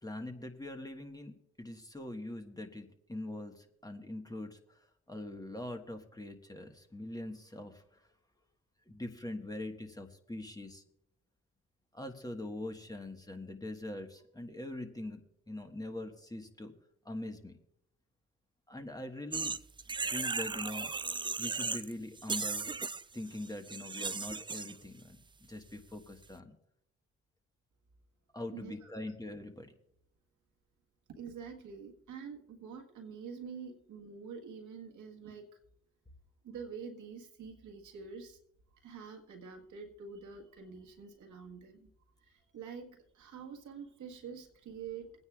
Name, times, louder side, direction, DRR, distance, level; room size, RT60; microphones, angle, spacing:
voice 1, 0.0-8.1 8.9-10.8 11.9-16.7 17.0-17.6 18.7-19.5 20.1-20.9 21.4-22.7 23.1-26.5 28.3-29.7, left 1 dB, 10° left, 4 dB, 1.5 m, -43 dB
sound 1, 19.3-21.9 22.2-24.8, right 4 dB, 15° right, 0.4 m, -36 dB
voice 2, 28.5-28.9 31.1-35.5 36.4-38.4 38.8-41.9 42.2-45.1, right 6 dB, 70° right, 3 dB, 1.6 m, -46 dB
24.0 x 9.6 x 2.4 m, 0.74 s
hypercardioid pair, 45°, 31 cm